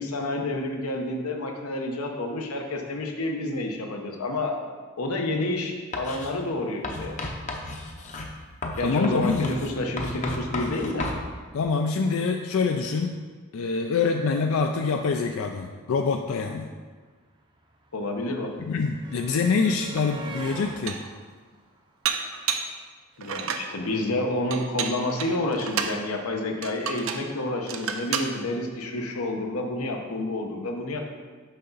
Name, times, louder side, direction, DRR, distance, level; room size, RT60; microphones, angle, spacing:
voice 1, 0.0-4.5 5.0-7.1 8.8-11.1 17.9-18.6 23.2-31.0, left 1 dB, 85° left, 2 dB, 0.9 m, -29 dB
Writing, 5.9-6.3 6.8-11.2, left 2 dB, 35° left, 0.7 m, -34 dB
voice 2, 8.8-9.5 11.5-13.1 13.5-16.7 18.7-21.0, left 4 dB, 70° left, 4 dB, 0.4 m, -25 dB
sound 1, 16.8-22.7 23.9-24.0 24.3-24.4, right 2 dB, 20° right, 0.6 m, -44 dB
Dishes pots and pans, 20.0-20.1 20.6-21.2 22.0-22.8 23.2-23.7 24.5-26.0 26.6-27.3 27.7-28.3, right 6 dB, 65° right, 0.5 m, -30 dB
6.5 x 5.6 x 3.9 m, 1.5 s
head